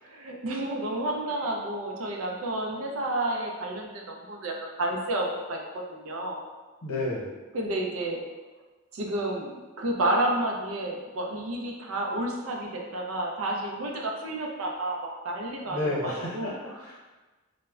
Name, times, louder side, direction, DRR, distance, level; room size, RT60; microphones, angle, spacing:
voice 1, 0.0-6.4 7.5-8.2 8.9-16.5, right 1 dB, 70° right, 1 dB, 0.4 m, -30 dB
voice 2, 6.8-7.4 15.7-17.0, left 2 dB, 85° left, -5 dB, 0.8 m, -31 dB
2.1 x 2.1 x 3.5 m, 1.2 s
head